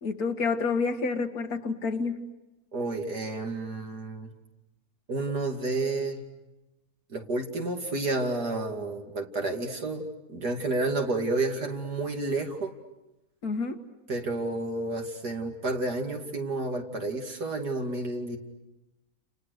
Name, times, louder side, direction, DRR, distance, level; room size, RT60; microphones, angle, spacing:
voice 1, 0.0-2.3 13.4-13.8, left 4 dB, 70° left, 6 dB, 2.2 m, -29 dB
voice 2, 2.7-4.3 5.1-6.2 7.1-12.7 14.1-18.4, right 2 dB, 80° right, 3 dB, 3.2 m, -30 dB
30.0 x 29.5 x 6.6 m, 1.0 s
omnidirectional pair, 1.7 m